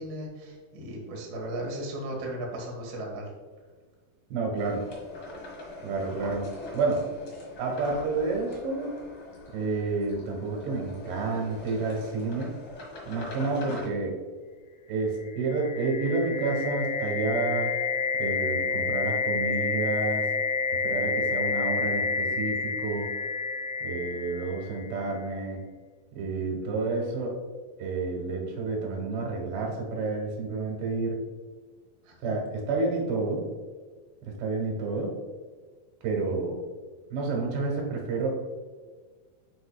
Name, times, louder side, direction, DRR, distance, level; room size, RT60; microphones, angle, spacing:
voice 1, 0.0-3.3 26.6-26.7 32.0-32.5, right 1 dB, 65° right, -1 dB, 1.1 m, -36 dB
voice 2, 4.3-4.9 5.8-7.1 7.6-8.9 9.5-12.5 13.1-14.2 14.9-17.7 18.2-20.3 20.8-23.1 23.8-25.6 26.2-27.4 27.8-31.2 32.2-33.5 34.3-35.1 36.0-36.6 37.1-38.4, right 3 dB, 90° right, 0 dB, 3.5 m, -29 dB
sound 1, 4.5-13.9, left 1 dB, 50° left, 1.6 m, -42 dB
sound 2, 15.3-25.1, left 5 dB, 75° left, 2.3 m, -29 dB
10.5 x 5.0 x 2.3 m, 1.5 s
omnidirectional pair, 4.7 m